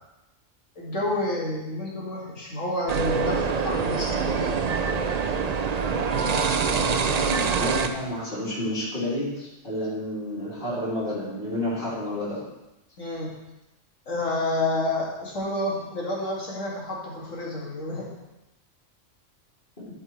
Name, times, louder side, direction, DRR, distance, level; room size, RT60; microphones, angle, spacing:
voice 1, 0.8-4.6 13.0-13.4 14.1-18.1, left 2 dB, 70° left, -5 dB, 2.7 m, -29 dB
sound 1, 2.9-7.9, right 5 dB, 50° right, 0.5 m, -25 dB
voice 2, 6.3-12.4 19.8-19.9, left 1 dB, 40° left, -9 dB, 3.4 m, -30 dB
11.5 x 5.5 x 4.6 m, 0.98 s
omnidirectional pair, 1.3 m